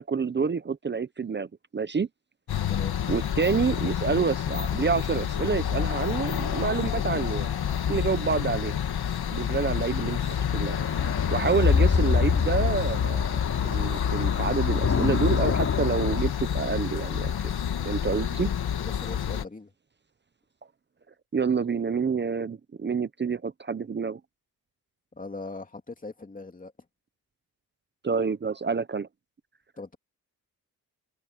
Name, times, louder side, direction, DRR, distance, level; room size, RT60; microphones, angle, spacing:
voice 1, 0.0-2.1 3.1-7.5 7.9-8.8 9.3-10.8 11.3-13.3 13.6-17.3 17.8-18.5 21.3-24.2 28.0-29.1, right 5 dB, 30° right, 0.7 m, -28 dB
sound 1, 2.5-19.4, left 9 dB, 85° left, 2.2 m, -28 dB
sound 2, 10.7-16.2, left 5 dB, 45° left, 2.8 m, -27 dB
voice 2, 18.8-19.7 25.1-26.7 29.8-30.0, left 3 dB, 20° left, 2.8 m, -40 dB
open air
wide cardioid pair, 130°, 37 cm